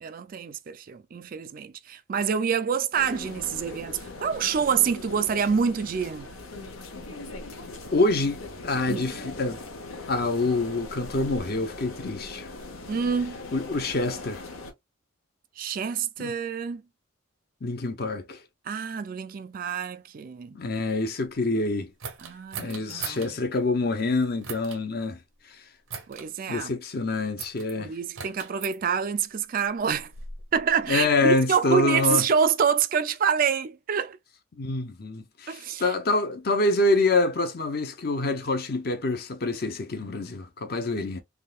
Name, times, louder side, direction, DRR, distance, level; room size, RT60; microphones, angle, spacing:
voice 1, 0.0-6.3 8.9-9.1 12.9-13.4 15.6-16.8 18.7-20.6 22.2-23.3 26.1-26.7 27.8-30.1 30.5-34.2 35.5-35.9, right 7 dB, 45° right, 0.3 m, -27 dB
sound 1, 2.9-14.7, left 2 dB, 90° left, 0.9 m, -40 dB
voice 2, 7.9-9.6 10.1-12.5 13.5-14.4 16.2-16.3 17.6-18.4 20.5-21.9 22.6-25.2 25.5-25.6 26.5-27.9 30.9-32.3 34.6-41.2, left 2 dB, 50° left, 0.6 m, -26 dB
sound 2, 22.0-23.3 24.4-24.8 25.9-26.3 27.4-27.7 28.1-28.8 29.7-31.1, right 6 dB, 85° right, 0.8 m, -39 dB
3.6 x 2.3 x 2.3 m
head